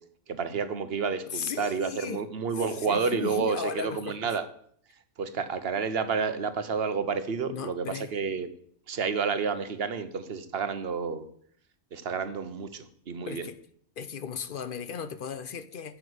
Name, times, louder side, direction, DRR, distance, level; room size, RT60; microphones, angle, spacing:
voice 1, 0.3-4.5 5.2-8.5 8.9-11.3 11.9-13.5, right 5 dB, 55° right, 1.1 m, -30 dB
voice 2, 1.3-2.2 2.5-4.4 7.5-8.1 13.3-13.6 14.0-16.0, left 7 dB, 55° left, 0.7 m, -36 dB
9.5 x 5.9 x 8.0 m
omnidirectional pair, 1.3 m